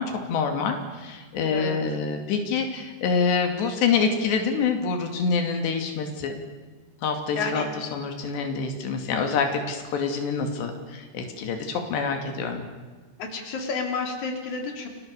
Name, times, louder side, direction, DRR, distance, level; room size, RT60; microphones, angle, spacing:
voice 1, 0.0-6.4 7.0-12.6, left 5 dB, 85° left, 5 dB, 4.7 m, -26 dB
voice 2, 1.4-1.8 7.3-7.7 13.2-14.9, left 4 dB, 45° left, 3 dB, 4.8 m, -30 dB
30.0 x 22.5 x 7.0 m, 1.4 s
omnidirectional pair, 4.8 m